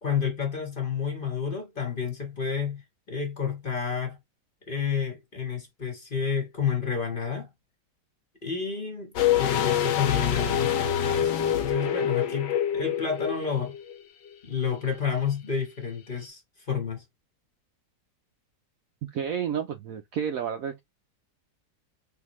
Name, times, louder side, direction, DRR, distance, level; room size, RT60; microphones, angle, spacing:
voice 1, 0.0-4.2 4.7-7.5 8.4-13.8 14.4-16.4 16.7-17.0, left 6 dB, 35° left, 1.2 m, -30 dB
sound 1, 9.2-14.0 14.3-14.4, left 10 dB, 85° left, 1.5 m, -26 dB
voice 2, 19.0-20.8, right 8 dB, 70° right, 0.8 m, -31 dB
3.8 x 3.5 x 3.0 m
omnidirectional pair, 1.9 m